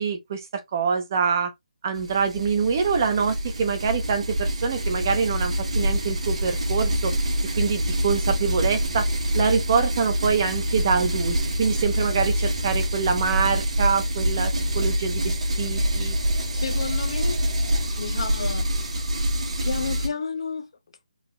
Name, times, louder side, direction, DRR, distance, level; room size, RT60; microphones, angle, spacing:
voice 1, 0.0-1.5 1.8-7.1 7.6-9.1 9.3-16.2, right 6 dB, 25° right, 0.6 m, -25 dB
sound 1, 1.9-20.1, equal, 60° right, 1.3 m, -26 dB
voice 2, 16.5-17.5 18.0-18.7 19.6-20.7, left 5 dB, 45° left, 0.7 m, -31 dB
3.9 x 2.9 x 3.1 m
hypercardioid pair, 170°, 4 cm